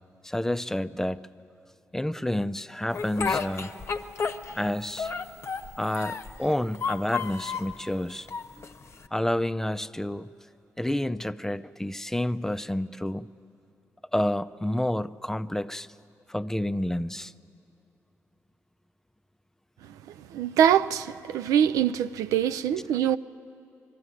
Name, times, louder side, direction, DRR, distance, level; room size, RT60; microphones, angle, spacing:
voice 1, 0.2-1.3 1.9-3.7 4.6-5.1 5.8-8.3 9.1-10.3 10.8-13.3 14.1-15.9 16.3-17.3, left 1 dB, 5° left, 0.4 m, -29 dB
Speech, 2.9-4.7 5.0-6.4 6.7-7.7 8.3-9.1, left 5 dB, 50° left, 0.8 m, -31 dB
voice 2, 20.3-23.2, right 9 dB, 85° right, 0.4 m, -23 dB
21.0 x 13.5 x 9.8 m
supercardioid pair, 60°, 6 cm